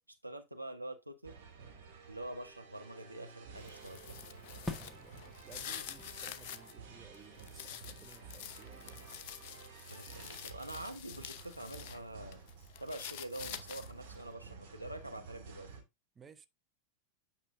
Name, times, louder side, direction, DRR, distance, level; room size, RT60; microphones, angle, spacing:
voice 1, 0.2-1.4 2.1-4.2 9.9-12.4 12.8-15.7, right 1 dB, 85° right, 1.0 m, -45 dB
sound 1, 1.2-15.8, right 5 dB, 50° right, 2.5 m, -53 dB
sound 2, 3.5-8.8, left 2 dB, 10° left, 1.3 m, -49 dB
sound 3, 3.6-6.7 7.1-12.0 12.3-14.1, left 9 dB, 45° left, 0.8 m, -47 dB
voice 2, 4.6-9.0 16.1-16.5, right 7 dB, 20° right, 0.6 m, -58 dB
9.0 x 5.5 x 2.6 m
figure-of-eight pair, 90°, 0 cm